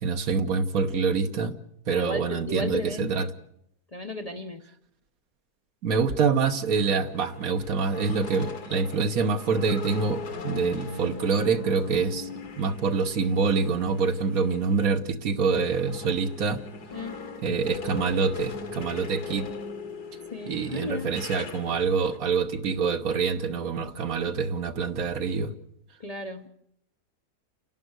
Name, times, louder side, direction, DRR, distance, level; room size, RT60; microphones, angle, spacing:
voice 1, 0.0-1.5 1.9-3.3 5.8-12.3 12.6-16.6 17.4-19.5 20.4-25.5, right 5 dB, 65° right, 8 dB, 1.5 m, -26 dB
voice 2, 1.9-3.3 3.9-4.6 16.9-17.1 20.3-21.1 26.0-26.5, left 2 dB, 30° left, 4 dB, 0.8 m, -34 dB
sound 1, 6.6-15.0 15.3-22.2, left 4 dB, 80° left, 2.1 m, -40 dB
29.5 x 11.0 x 7.9 m, 0.75 s
omnidirectional pair, 1.7 m